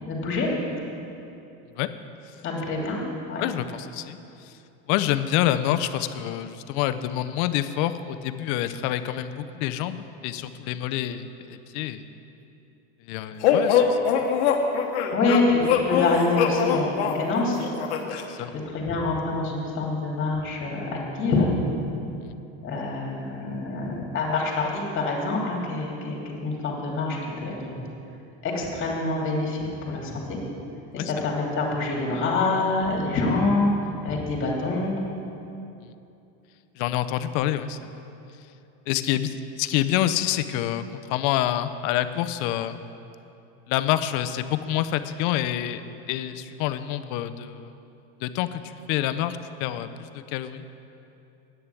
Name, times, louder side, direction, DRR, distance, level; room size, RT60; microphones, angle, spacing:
voice 1, 0.1-0.5 2.4-3.0 3.3-3.4 15.1-17.6 18.5-21.5 22.6-27.8 28.4-30.4 30.9-33.7 34.0-34.9, left 3 dB, 35° left, -2 dB, 2.7 m, -26 dB
voice 2, 3.4-4.2 4.9-12.0 13.1-14.0 18.3-18.5 31.0-31.3 36.8-37.9 38.9-40.8 41.1-42.8 43.7-45.8 46.1-47.7 48.2-50.6, left 12 dB, 60° left, 11 dB, 0.6 m, -27 dB
sound 1, 13.4-18.3, left 7 dB, 80° left, 1.1 m, -23 dB
9.4 x 6.8 x 8.2 m, 2.8 s
supercardioid pair, 130°, 33 cm